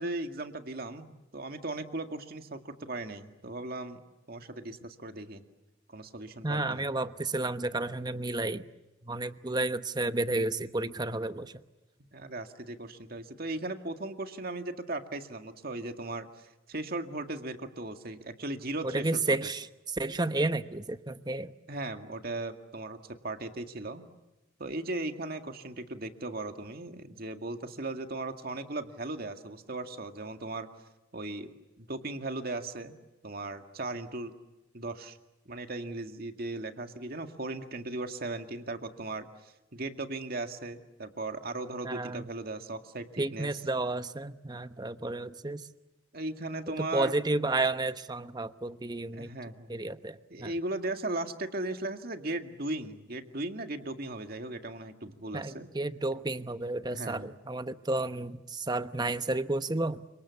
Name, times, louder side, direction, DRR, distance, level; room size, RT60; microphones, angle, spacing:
voice 1, 0.0-4.0 4.3-5.4 5.9-6.9 12.1-19.4 21.7-23.0 23.2-24.1 24.6-30.7 31.1-33.0 33.2-34.3 34.7-35.2 35.5-43.5 46.1-47.2 49.1-49.9 50.3-55.7 56.9-57.3, right 2 dB, 50° right, 6 dB, 2.1 m, -37 dB
voice 2, 6.4-8.7 9.0-11.5 18.8-21.5 41.8-42.3 43.2-45.7 46.8-49.3 49.7-50.5 55.3-60.0, right 2 dB, 20° right, 11 dB, 1.0 m, -31 dB
30.0 x 26.5 x 7.1 m, 1.0 s
head